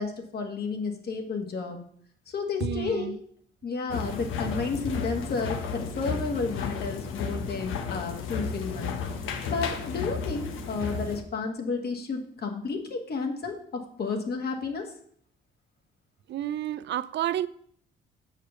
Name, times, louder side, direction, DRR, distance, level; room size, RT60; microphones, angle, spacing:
voice 1, 0.0-1.8 2.3-3.2 3.6-8.9 9.5-14.9, left 4 dB, 50° left, 1.7 m, -31 dB
voice 2, 2.6-3.2 16.3-17.5, right 12 dB, 65° right, 0.4 m, -30 dB
sound 1, 3.9-11.2, left 5 dB, 85° left, 1.0 m, -33 dB
6.6 x 5.0 x 6.8 m
cardioid pair, 90°, 20 cm